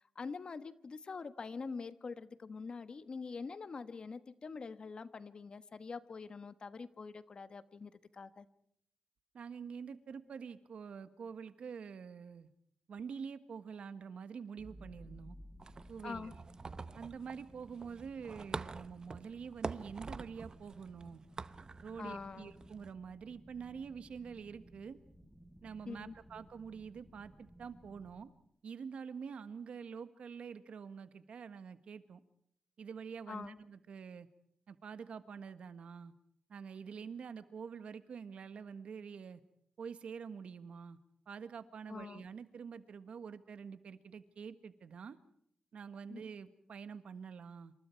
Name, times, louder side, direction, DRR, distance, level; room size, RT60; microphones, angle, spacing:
voice 1, 0.0-8.5 16.0-16.3 22.0-22.5 25.9-26.1 33.3-33.6 41.9-42.2 46.1-46.2, left 4 dB, 50° left, 12 dB, 1.3 m, -45 dB
voice 2, 9.3-12.5 12.9-15.4 15.9-16.3 16.9-21.2 21.8-25.0 25.6-28.3 28.6-32.2 32.8-34.3 34.7-36.1 36.5-39.4 39.8-41.0 41.3-45.2 45.7-47.7, right 6 dB, 80° right, 11 dB, 1.5 m, -46 dB
sound 1, 14.6-28.3, equal, ahead, 2.8 m, -58 dB
sound 2, 15.6-22.9, right 4 dB, 40° right, 0.8 m, -46 dB
27.5 x 26.5 x 4.6 m, 0.70 s
wide cardioid pair, 105°, 2 cm